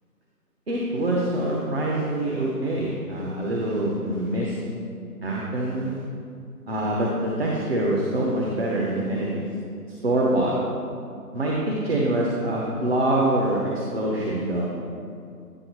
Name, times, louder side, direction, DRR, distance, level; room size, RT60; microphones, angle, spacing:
voice 1, 0.7-4.6 5.2-6.0 6.7-9.4 10.0-10.5 11.3-13.6 13.9-14.6, right 1 dB, 40° right, -3 dB, 1.0 m, -25 dB
9.9 x 6.8 x 3.1 m, 2.4 s
figure-of-eight pair, 145°, 47 cm